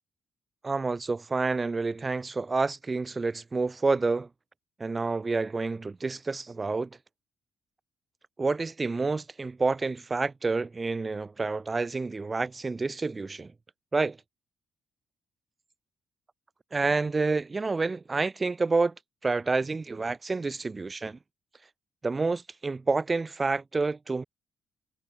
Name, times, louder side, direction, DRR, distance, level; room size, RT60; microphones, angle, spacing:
voice 1, 0.6-4.3 4.8-6.9 8.4-13.5 13.9-14.2 16.7-18.9 19.2-21.2 22.0-24.2, right 3 dB, 25° right, 1.4 m, -28 dB
cardioid pair, 90°, 0 cm